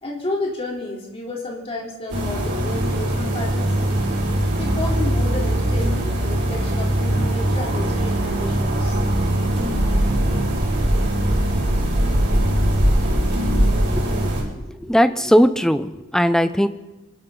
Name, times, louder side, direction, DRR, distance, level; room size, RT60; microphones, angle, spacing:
voice 1, 0.0-4.0 4.6-9.0, left 2 dB, 25° left, -3 dB, 3.5 m, -31 dB
sound 1, 2.1-14.4, right 1 dB, 50° right, 4.8 m, -21 dB
voice 2, 13.9-14.3 14.8-16.7, equal, ahead, 11 dB, 0.6 m, -18 dB
25.0 x 13.0 x 3.9 m, 1.0 s
head